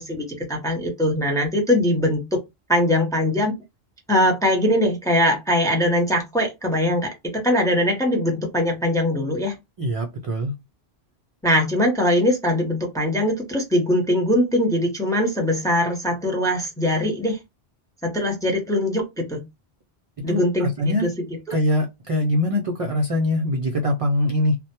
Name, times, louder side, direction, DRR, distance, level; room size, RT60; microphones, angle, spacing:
voice 1, 0.0-2.2 2.7-3.5 4.1-7.1 7.4-9.6 11.4-17.4 18.0-19.4 20.2-21.1 21.5-21.6, left 1 dB, 5° left, 0.4 m, -21 dB
voice 2, 9.8-10.5 20.3-21.1 21.5-24.6, left 1 dB, 60° right, 0.3 m, -23 dB
2.1 x 2.1 x 2.8 m
omnidirectional pair, 1.1 m